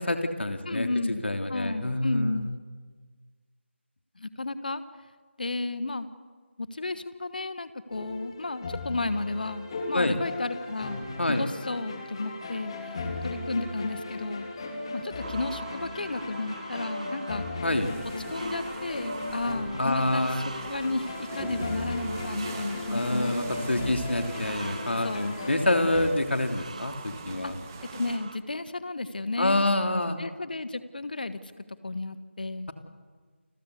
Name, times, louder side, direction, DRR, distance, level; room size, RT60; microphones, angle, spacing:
voice 1, 0.0-0.9 1.2-2.5 9.9-10.2 11.2-11.4 17.6-17.9 19.8-20.4 22.9-27.5 29.4-30.2, left 1 dB, 65° left, 5 dB, 3.1 m, -27 dB
voice 2, 0.6-1.2 1.5-2.5 4.2-4.8 5.4-6.1 6.6-12.7 13.2-14.5 14.9-17.4 18.2-23.9 25.0-25.5 27.4-27.5 27.9-29.7 30.2-31.4 31.8-32.7, left 2 dB, 45° left, 13 dB, 1.3 m, -33 dB
sound 1, 7.9-26.1, left 2 dB, 25° left, 3.0 m, -37 dB
sound 2, 15.2-28.4, right 4 dB, 35° right, 1.4 m, -44 dB
sound 3, 17.7-28.2, right 4 dB, 15° right, 1.7 m, -44 dB
29.5 x 22.5 x 8.3 m, 1.5 s
figure-of-eight pair, 165°, 7 cm